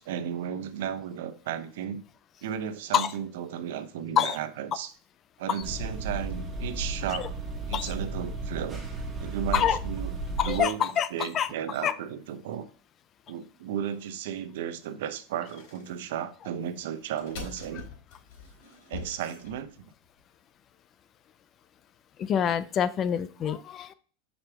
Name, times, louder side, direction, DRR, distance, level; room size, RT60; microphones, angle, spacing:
voice 1, 0.0-2.0 2.4-4.9 5.4-7.4 7.7-8.8 9.2-10.2 10.5-12.7 13.3-17.9 18.9-19.7, right 9 dB, 80° right, 0.7 m, -34 dB
sound 1, 5.6-10.6, right 2 dB, 15° right, 1.7 m, -34 dB
voice 2, 10.4-11.5 11.8-11.9 22.2-23.9, left 9 dB, 30° left, 0.5 m, -26 dB
sound 2, 15.5-15.9 17.0-20.1, left 3 dB, 75° left, 3.6 m, -43 dB
6.0 x 5.3 x 3.5 m
supercardioid pair, 145°, 0 cm